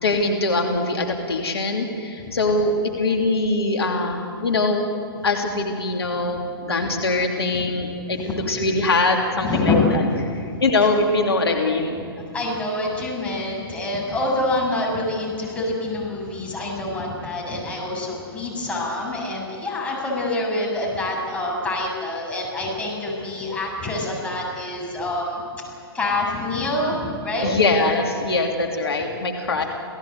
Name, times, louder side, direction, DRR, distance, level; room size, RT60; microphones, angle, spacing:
voice 1, 0.0-4.9 5.2-10.0 10.6-12.0 27.4-29.6, left 2 dB, 75° left, 2 dB, 3.0 m, -22 dB
voice 2, 8.1-8.6 9.4-10.6 12.3-25.6 25.9-27.5, left 2 dB, 10° left, -3 dB, 7.6 m, -26 dB
28.5 x 17.5 x 8.2 m, 2.5 s
figure-of-eight pair, 120°, 13 cm